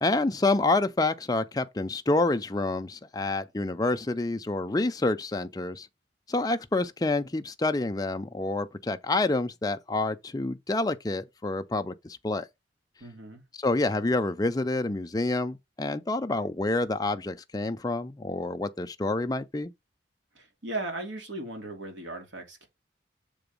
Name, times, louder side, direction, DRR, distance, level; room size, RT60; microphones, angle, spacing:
voice 1, 0.0-5.9 6.3-12.5 13.5-19.7, left 2 dB, 20° left, 0.5 m, -28 dB
voice 2, 13.0-13.4 20.3-22.7, right 2 dB, 85° right, 2.4 m, -37 dB
6.9 x 3.8 x 5.3 m
head